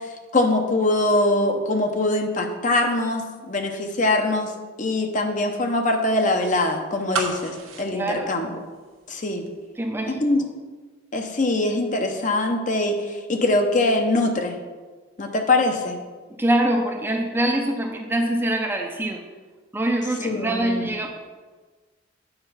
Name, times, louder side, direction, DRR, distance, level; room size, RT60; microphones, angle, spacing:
voice 1, 0.3-4.5 4.8-8.5 9.1-9.4 10.1-10.4 11.1-14.6 15.2-16.0 20.2-20.9, left 2 dB, 40° left, 4 dB, 0.7 m, -23 dB
sound 1, 7.1-9.2 9.5-9.6, right 5 dB, 85° right, 0.9 m, -31 dB
voice 2, 7.9-8.4 9.8-10.5 16.4-19.2 19.7-21.1, right 1 dB, 10° right, 2 dB, 0.5 m, -24 dB
8.0 x 4.3 x 5.6 m, 1.4 s
head